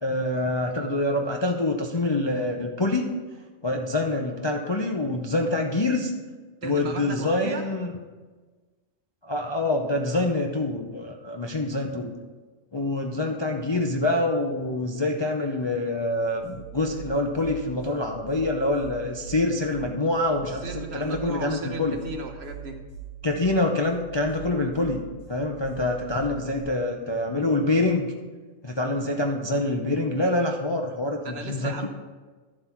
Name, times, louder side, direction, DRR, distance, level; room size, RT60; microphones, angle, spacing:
voice 1, 0.0-3.1 3.6-6.1 6.6-8.0 9.2-12.1 12.7-22.0 23.2-25.0 25.3-28.1 28.6-31.9, left 2 dB, 30° left, 2 dB, 0.5 m, -26 dB
voice 2, 6.6-7.6 20.5-22.8 31.2-31.9, right 3 dB, 55° right, 4 dB, 1.2 m, -35 dB
sound 1, 16.4-26.6, right 7 dB, 75° left, 3.1 m, -43 dB
11.5 x 7.6 x 4.4 m, 1.4 s
omnidirectional pair, 1.4 m